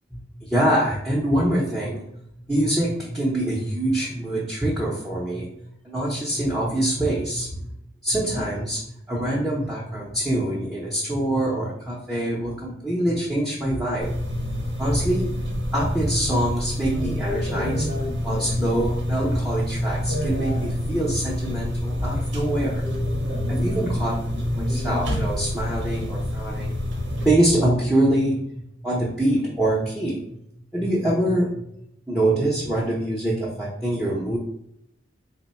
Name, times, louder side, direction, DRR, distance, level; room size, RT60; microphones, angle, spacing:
voice 1, 0.1-2.1 2.5-7.7 8.0-8.8 9.1-14.1 14.8-15.4 15.7-17.9 18.2-22.9 23.5-26.7 27.2-30.2 30.7-31.6 32.1-34.4, right 1 dB, 5° right, -5 dB, 0.7 m, -24 dB
sound 1, 14.0-27.3, left 1 dB, 80° right, 1.1 m, -27 dB
3.8 x 2.1 x 4.1 m, 0.75 s
head